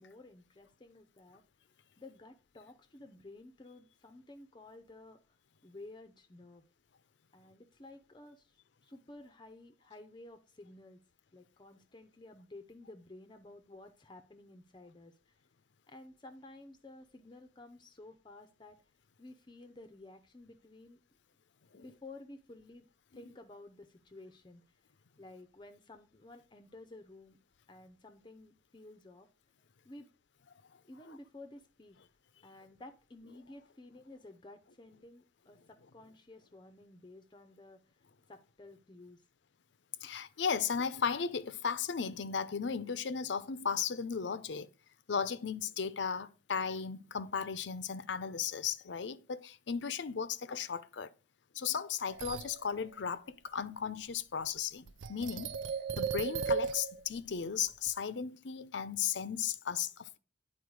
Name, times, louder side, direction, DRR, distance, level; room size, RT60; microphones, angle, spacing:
voice 1, 0.0-1.4 2.0-5.2 5.6-6.6 7.3-11.0 11.3-15.3 15.9-18.8 19.2-21.0 21.7-22.9 23.1-24.6 25.2-27.4 27.7-29.3 29.8-30.1 30.9-32.0 32.4-38.0 38.3-39.2, left 2 dB, 25° left, 0.6 m, -53 dB
voice 2, 40.0-44.7 45.1-51.1 51.5-55.6 56.0-60.2, left 6 dB, 80° left, 0.6 m, -35 dB
sound 1, 52.1-52.7 54.9-57.2 57.6-57.9, right 5 dB, 90° right, 0.5 m, -35 dB
9.4 x 4.4 x 4.8 m
head